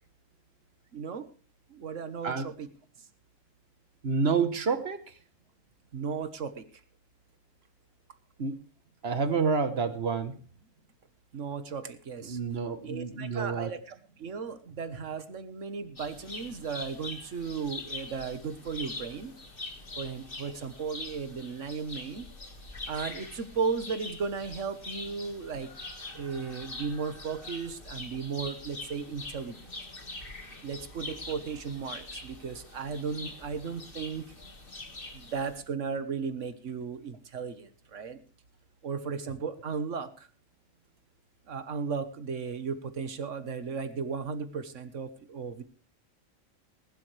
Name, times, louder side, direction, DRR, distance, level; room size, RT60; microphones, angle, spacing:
voice 1, 0.9-1.3 1.7-2.7 3.0-3.1 5.9-6.6 11.3-12.4 12.8-19.3 20.0-22.3 22.9-25.7 26.1-29.6 30.6-34.3 35.1-38.2 38.8-40.3 41.5-45.6, right 5 dB, 65° right, 10 dB, 1.7 m, -35 dB
voice 2, 4.0-5.0 8.4-8.6 9.0-10.3 12.2-13.7, right 5 dB, 50° right, 10 dB, 1.4 m, -28 dB
sound 1, 16.0-35.6, left 2 dB, 40° left, 2.2 m, -43 dB
20.5 x 11.5 x 3.4 m, 0.37 s
omnidirectional pair, 1.4 m